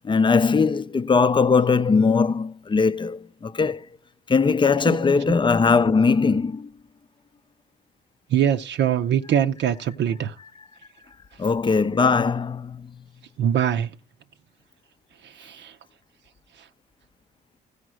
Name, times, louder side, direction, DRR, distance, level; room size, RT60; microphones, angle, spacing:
voice 1, 0.0-3.9 4.3-6.7 11.4-12.9, left 5 dB, 25° left, 0.5 m, -20 dB
voice 2, 8.3-10.3 13.4-13.9 15.2-15.7, right 9 dB, 65° right, 0.6 m, -23 dB
14.5 x 5.1 x 6.2 m
cardioid pair, 90°, 20 cm